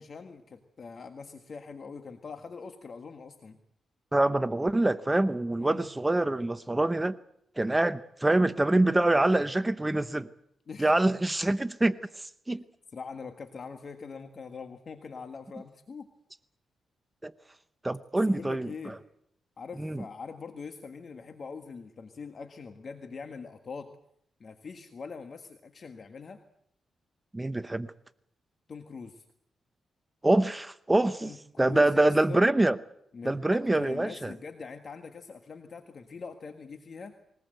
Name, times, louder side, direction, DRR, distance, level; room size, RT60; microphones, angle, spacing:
voice 1, 0.0-3.6 5.6-5.8 10.7-10.9 12.9-16.1 18.2-19.0 19.6-24.0 24.4-26.4 28.7-29.2 31.2-31.4 31.6-32.5 33.1-37.1, left 5 dB, 50° left, 6 dB, 1.6 m, -43 dB
voice 2, 4.1-7.2 7.6-10.3 10.8-12.6 17.2-17.3 17.8-18.9 19.8-20.0 27.3-27.9 30.2-32.8 33.2-34.3, right 2 dB, 15° right, 13 dB, 0.8 m, -25 dB
21.5 x 20.0 x 7.9 m, 0.72 s
cardioid pair, 90°, 0 cm